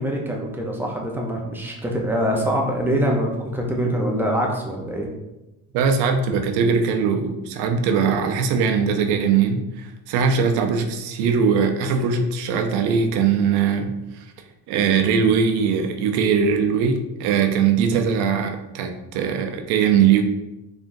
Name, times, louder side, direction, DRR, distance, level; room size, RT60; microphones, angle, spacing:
voice 1, 0.0-5.1, equal, 5° right, -1 dB, 0.6 m, -24 dB
voice 2, 5.7-14.2 14.7-20.2, right 6 dB, 80° right, 4 dB, 0.6 m, -20 dB
3.7 x 3.3 x 2.6 m, 0.99 s
cardioid pair, 120°, 37 cm